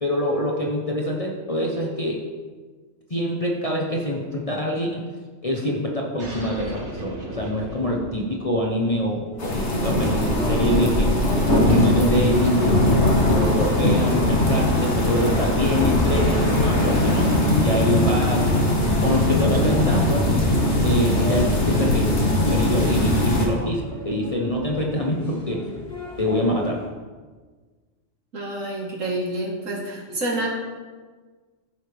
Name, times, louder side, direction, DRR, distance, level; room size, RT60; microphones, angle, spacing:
voice 1, 0.0-2.2 3.1-4.9 5.4-11.1 11.7-17.3 17.6-18.5 19.0-20.3 20.8-22.1 22.5-25.7 26.2-26.8, left 1 dB, 30° left, -2 dB, 1.1 m, -25 dB
sound 1, 6.2-11.3, right 1 dB, 60° right, 2.5 m, -38 dB
sound 2, 9.3-26.9, equal, 5° left, 2.8 m, -37 dB
sound 3, 9.4-23.5, left 1 dB, 60° left, 2.3 m, -20 dB
voice 2, 28.3-30.5, right 1 dB, 80° right, -2 dB, 2.4 m, -28 dB
14.5 x 7.7 x 3.6 m, 1.4 s
omnidirectional pair, 1.3 m